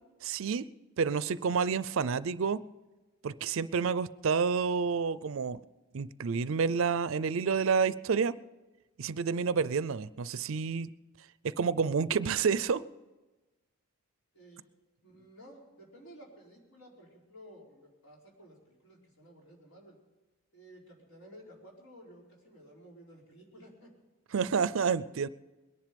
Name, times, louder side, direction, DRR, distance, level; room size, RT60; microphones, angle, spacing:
voice 1, 0.2-0.7 1.0-2.6 3.2-5.6 5.9-8.4 9.0-10.9 11.4-12.8 24.3-25.3, right 5 dB, 65° right, 17 dB, 0.5 m, -29 dB
voice 2, 15.0-20.0 20.5-23.9, equal, 75° left, -2 dB, 4.5 m, -54 dB
21.5 x 10.5 x 5.2 m, 1.1 s
head